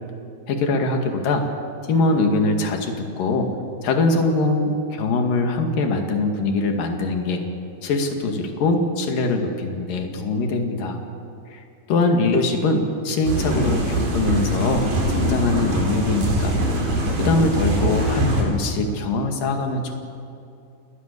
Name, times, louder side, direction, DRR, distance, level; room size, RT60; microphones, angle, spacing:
voice 1, 0.5-1.4 1.9-3.5 3.8-7.4 7.8-11.0 11.5-16.6 17.2-20.0, left 2 dB, 65° left, 3 dB, 3.7 m, -22 dB
sound 1, 13.3-18.4, right 1 dB, 60° right, 5.8 m, -23 dB
29.5 x 20.0 x 6.8 m, 2.6 s
omnidirectional pair, 4.4 m